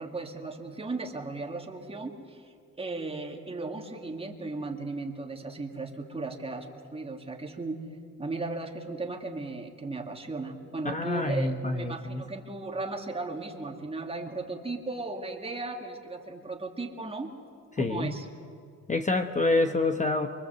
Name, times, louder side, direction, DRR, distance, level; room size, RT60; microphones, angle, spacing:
voice 1, 0.0-2.5 2.8-7.8 8.2-17.3 17.8-18.3, right 3 dB, 20° right, 3 dB, 2.2 m, -36 dB
voice 2, 10.8-12.2 17.8-18.2 18.9-20.3, left 2 dB, 25° left, 7 dB, 1.0 m, -27 dB
26.5 x 23.5 x 7.9 m, 2.3 s
wide cardioid pair, 145°, 30 cm